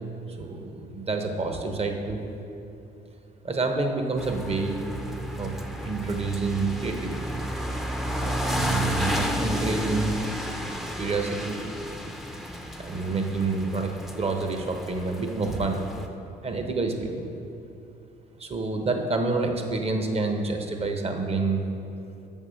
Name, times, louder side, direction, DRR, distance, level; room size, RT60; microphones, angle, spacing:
voice 1, 0.4-2.2 3.4-4.8 5.4-5.5 5.8-7.4 8.4-10.2 11.0-11.5 12.8-15.8 16.4-17.3 18.4-21.6, right 3 dB, 35° right, 4 dB, 1.0 m, -28 dB
sound 1, 4.2-16.1, equal, ahead, 0.6 m, -32 dB
6.5 x 5.5 x 6.3 m, 2.7 s
supercardioid pair, 70°, 19 cm